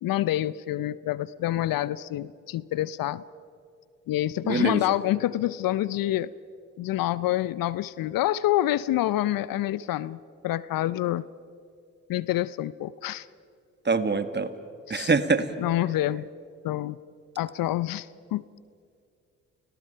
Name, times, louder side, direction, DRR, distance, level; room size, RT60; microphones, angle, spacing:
voice 1, 0.0-3.2 4.1-6.3 6.8-10.2 10.4-11.2 12.1-13.3 14.9-15.1 15.6-16.3 16.6-17.0 17.4-18.4, left 14 dB, 60° left, 19 dB, 0.6 m, -27 dB
voice 2, 4.4-4.8 13.8-14.5 14.9-15.5, right 4 dB, 25° right, 11 dB, 1.8 m, -24 dB
29.5 x 18.0 x 5.7 m, 2.4 s
hypercardioid pair, 50°, 38 cm